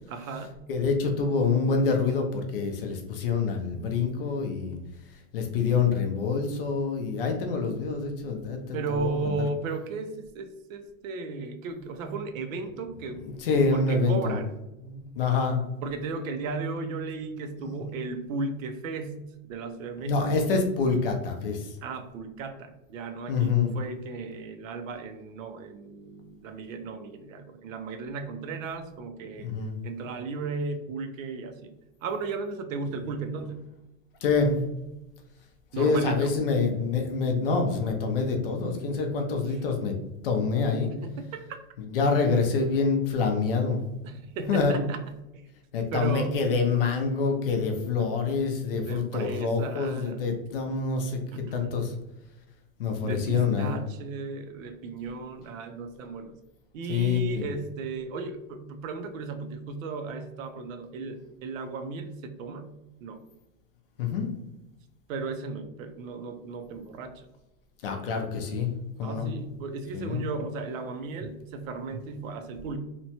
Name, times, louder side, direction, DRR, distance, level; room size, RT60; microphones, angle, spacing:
voice 1, 0.1-0.6 8.7-13.2 13.5-14.5 15.8-20.5 21.8-29.5 29.8-31.7 32.0-33.6 35.7-36.3 41.0-41.5 44.0-45.0 45.9-46.4 48.0-48.1 48.8-50.2 51.3-51.7 53.0-56.3 56.7-62.7 63.0-63.2 65.1-67.3 69.0-72.8, right 4 dB, 70° right, 7 dB, 0.6 m, -35 dB
voice 2, 0.7-4.8 5.3-9.4 13.2-14.4 14.8-15.6 17.6-17.8 20.1-21.7 23.3-23.7 29.4-29.8 34.2-34.6 35.7-39.9 40.2-40.9 41.9-43.8 44.5-44.8 45.7-51.2 51.5-52.0 52.8-53.8 56.9-57.5 64.0-64.3 67.8-68.7 69.0-69.3 69.9-70.2, left 4 dB, 45° left, 3 dB, 0.4 m, -26 dB
2.9 x 2.1 x 2.7 m, 0.94 s
supercardioid pair, 170°, 41 cm